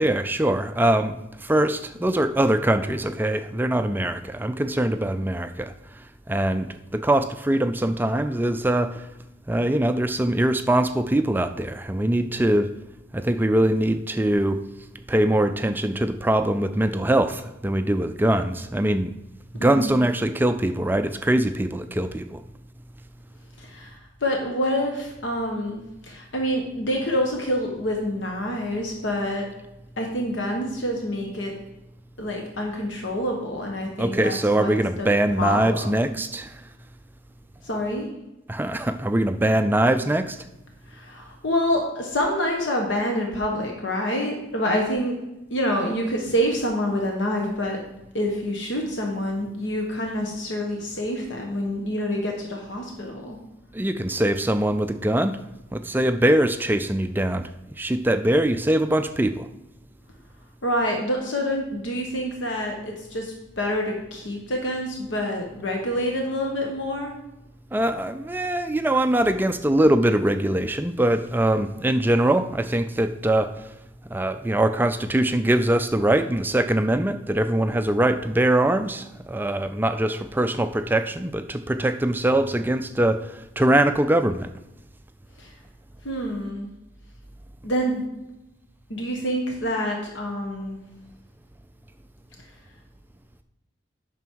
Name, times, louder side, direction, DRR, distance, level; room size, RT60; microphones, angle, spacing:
voice 1, 0.0-9.1 9.5-12.7 13.1-14.7 15.1-19.1 19.6-22.4 34.0-36.6 38.5-40.4 53.7-55.4 55.7-57.5 57.8-59.5 67.7-73.7 74.1-84.5, right 1 dB, 10° right, 9 dB, 0.3 m, -22 dB
voice 2, 19.6-20.0 23.6-29.4 30.0-31.5 32.2-35.1 35.4-36.1 37.6-38.1 40.9-45.2 45.5-47.8 48.1-53.4 60.6-67.1 85.4-85.5 86.0-86.7 87.6-88.0 88.9-90.8, equal, 75° left, 1 dB, 1.2 m, -27 dB
9.1 x 6.1 x 4.6 m, 0.91 s
head